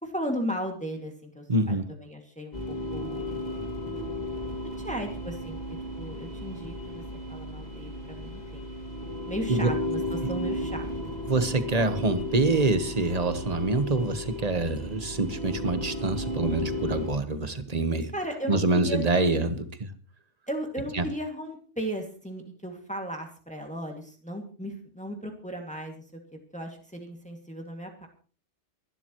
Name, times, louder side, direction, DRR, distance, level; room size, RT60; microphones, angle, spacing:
voice 1, 0.0-3.4 4.6-5.6 6.0-7.0 7.3-8.7 9.2-11.1 18.1-19.0 20.5-26.2 26.5-28.1, equal, 5° left, 2 dB, 2.3 m, -36 dB
voice 2, 1.5-1.9 9.5-9.7 11.3-18.1 18.5-19.9 20.9-21.0, right 3 dB, 35° right, 10 dB, 1.3 m, -26 dB
sound 1, 2.5-17.1, left 1 dB, 35° left, 2.6 m, -34 dB
24.0 x 12.0 x 3.1 m, 0.39 s
omnidirectional pair, 1.2 m